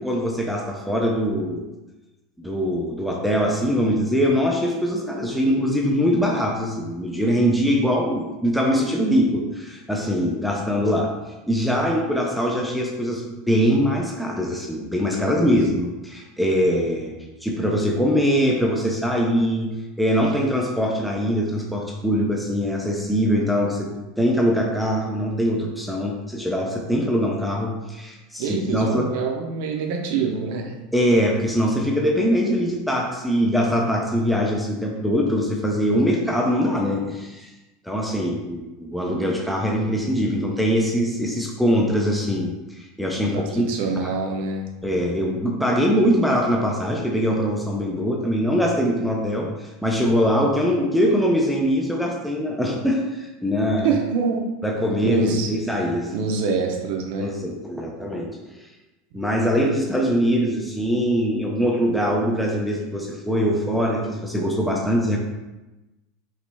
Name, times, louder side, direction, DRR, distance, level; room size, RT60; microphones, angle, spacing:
voice 1, 0.0-1.7 2.4-11.1 11.5-17.2 17.4-23.9 24.2-29.1 30.9-37.5 37.8-44.0 44.8-53.9 54.6-56.2 57.2-58.7 59.1-65.2, equal, ahead, -1 dB, 0.4 m, -22 dB
voice 2, 15.1-15.5 28.4-30.8 43.1-44.7 53.8-54.5 55.0-55.5 56.1-57.3 59.1-59.2, right 5 dB, 50° right, 2 dB, 0.6 m, -26 dB
5.1 x 3.1 x 3.3 m, 1.1 s
supercardioid pair, 180°, 0 cm